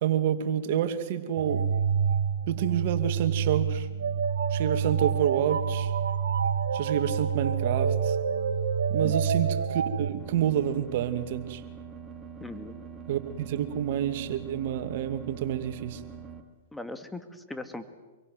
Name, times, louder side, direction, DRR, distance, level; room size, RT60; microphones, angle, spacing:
voice 1, 0.0-1.6 2.5-3.9 4.5-5.9 6.7-8.2 8.9-11.6 13.1-16.0, right 10 dB, 55° right, 9 dB, 2.5 m, -28 dB
sound 1, 1.4-10.1, right 7 dB, 80° right, 1.8 m, -27 dB
sound 2, 10.2-16.4, right 6 dB, 20° right, 3.5 m, -44 dB
voice 2, 12.4-12.7 16.7-17.8, left 1 dB, 5° left, 8 dB, 2.3 m, -39 dB
26.5 x 23.5 x 8.1 m, 1.2 s
hypercardioid pair, 115°, 0 cm